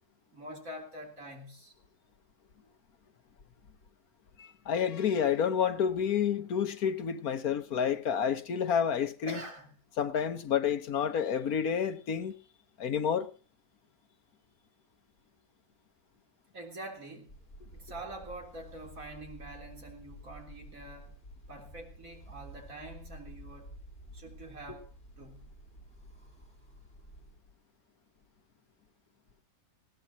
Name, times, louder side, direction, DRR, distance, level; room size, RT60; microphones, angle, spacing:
voice 1, 0.3-1.7 9.3-9.7 16.5-17.4 17.7-21.2 21.5-23.7 24.1-24.9 25.2-25.5, right 1 dB, 65° right, 3.9 m, -45 dB
voice 2, 4.4-9.4 10.0-12.4 12.8-13.3, left 7 dB, 75° left, 1.6 m, -29 dB
sound 1, 17.3-27.3, right 1 dB, 45° left, 7.6 m, -51 dB
20.0 x 17.0 x 2.8 m
omnidirectional pair, 1.6 m